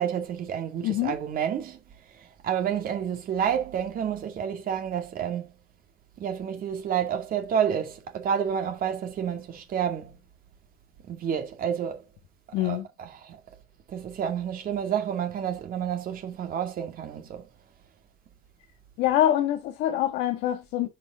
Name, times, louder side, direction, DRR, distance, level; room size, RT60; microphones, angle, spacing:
voice 1, 0.0-1.8 2.2-5.5 6.2-10.2 11.1-12.0 12.6-13.4 13.9-17.5, right 8 dB, 60° right, 2.4 m, -29 dB
voice 2, 0.8-1.1 12.5-12.9 19.0-20.9, left 12 dB, 90° left, 1.6 m, -25 dB
10.0 x 5.4 x 3.8 m
cardioid pair, 110°, 17 cm